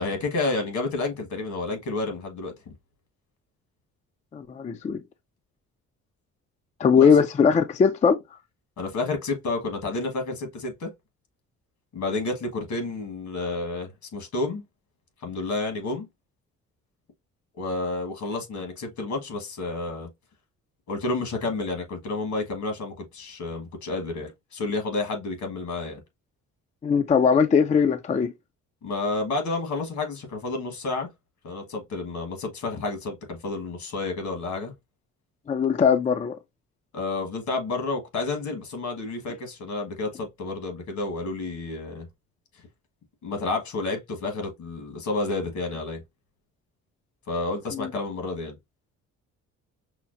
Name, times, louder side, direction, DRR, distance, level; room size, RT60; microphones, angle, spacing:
voice 1, 0.0-2.7 7.0-7.1 8.8-10.9 11.9-14.6 15.2-16.1 17.6-20.1 20.9-26.0 28.8-31.1 31.4-34.7 36.9-42.1 43.2-46.0 47.3-48.6, left 3 dB, 70° left, 1.6 m, -30 dB
voice 2, 4.3-5.0 6.8-8.2 26.8-28.3 35.5-36.4 47.7-47.9, left 6 dB, 25° left, 0.4 m, -20 dB
5.7 x 2.0 x 2.5 m
cardioid pair, 90°, 30 cm